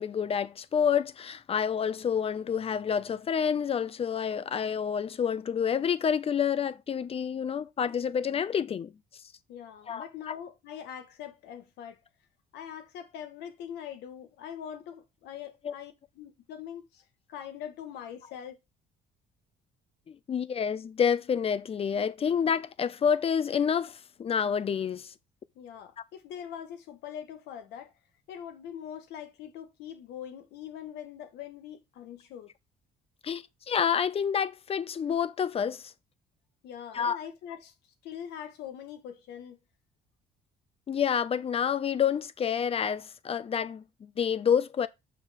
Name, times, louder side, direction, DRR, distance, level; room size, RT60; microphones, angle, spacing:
voice 1, 0.0-8.9 9.9-10.3 15.6-15.7 20.1-25.1 33.2-35.9 36.9-37.2 40.9-44.9, left 7 dB, 35° left, 0.6 m, -28 dB
voice 2, 9.5-12.0 12.5-17.0 17.3-18.6 25.5-27.9 28.3-32.5 36.6-37.7 38.0-39.6, left 9 dB, 85° left, 1.6 m, -42 dB
6.6 x 5.1 x 4.2 m
cardioid pair, 110°, 17 cm